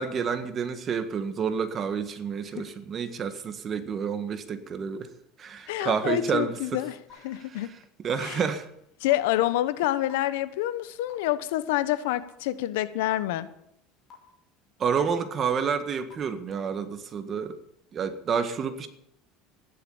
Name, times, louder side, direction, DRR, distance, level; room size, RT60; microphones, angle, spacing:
voice 1, 0.0-5.1 5.4-6.9 7.3-8.7 14.8-17.6 17.9-18.9, right 6 dB, 35° right, 9 dB, 1.6 m, -29 dB
voice 2, 5.7-6.9 7.2-7.7 8.2-8.4 9.0-13.5, left 14 dB, 85° left, 14 dB, 1.1 m, -27 dB
sound 1, 7.1-7.2 8.1-8.2 9.1-9.2 10.1-10.2 11.1-11.2 12.1-12.2 13.1-13.2 14.1-14.2 15.1-15.2 16.1-16.2, left 7 dB, 40° left, 5.4 m, -46 dB
15.0 x 11.0 x 7.2 m, 0.76 s
supercardioid pair, 125°, 0 cm